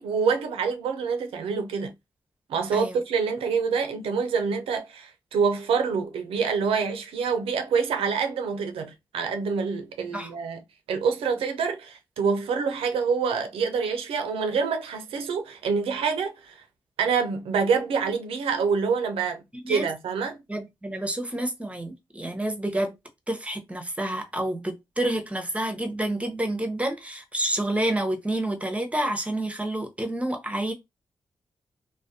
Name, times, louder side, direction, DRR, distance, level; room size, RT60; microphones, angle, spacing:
voice 1, 0.0-1.9 2.5-10.6 10.9-16.6 17.0-20.4, right 5 dB, 85° right, 0.4 m, -26 dB
voice 2, 20.5-22.9 23.3-30.7, right 1 dB, 15° right, 0.7 m, -29 dB
2.4 x 2.1 x 2.6 m
supercardioid pair, 40°, 9 cm